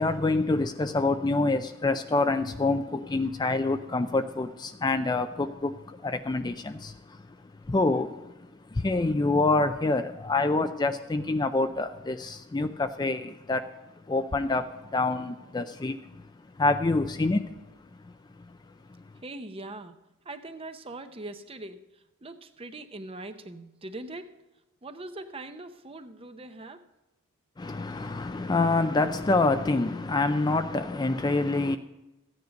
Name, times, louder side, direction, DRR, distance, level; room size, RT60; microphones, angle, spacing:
voice 1, 0.0-13.7 14.1-17.6 18.0-19.1 27.6-31.8, left 3 dB, 20° left, 0.3 m, -27 dB
voice 2, 19.2-20.0 20.2-24.4 24.8-26.8, right 2 dB, 25° right, 0.6 m, -41 dB
14.5 x 9.5 x 5.1 m
head